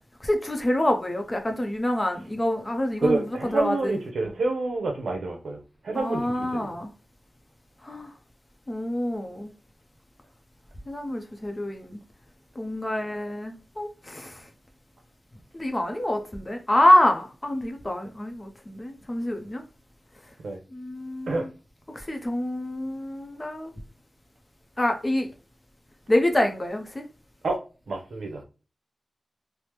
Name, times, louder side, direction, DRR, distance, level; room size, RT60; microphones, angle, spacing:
voice 1, 0.2-4.0 5.9-6.9 7.8-8.1 8.7-9.5 10.9-12.0 12.6-14.4 15.5-19.6 20.7-21.5 21.9-23.7 24.8-25.3 26.1-27.1, left 1 dB, 25° left, 0.6 m, -26 dB
voice 2, 3.0-6.7 20.4-20.6 21.3-21.5 27.4-27.6 27.9-28.4, right 3 dB, 90° right, 0.7 m, -28 dB
3.3 x 2.0 x 2.9 m
wide cardioid pair, 120°, 0 cm